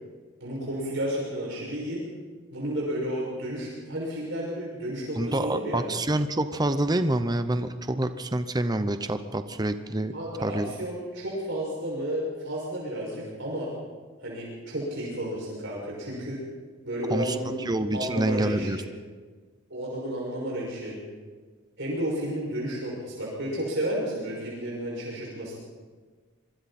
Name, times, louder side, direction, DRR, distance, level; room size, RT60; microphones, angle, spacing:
voice 1, 0.4-2.0 2.5-5.8 10.1-13.7 14.2-16.4 16.8-17.6 17.9-18.8 19.7-21.0 21.8-25.5, right 1 dB, 60° right, -5 dB, 6.2 m, -32 dB
voice 2, 5.1-10.1 10.4-10.7 17.1-18.8, right 1 dB, 20° right, 10 dB, 0.8 m, -27 dB
26.5 x 22.5 x 4.3 m, 1.5 s
head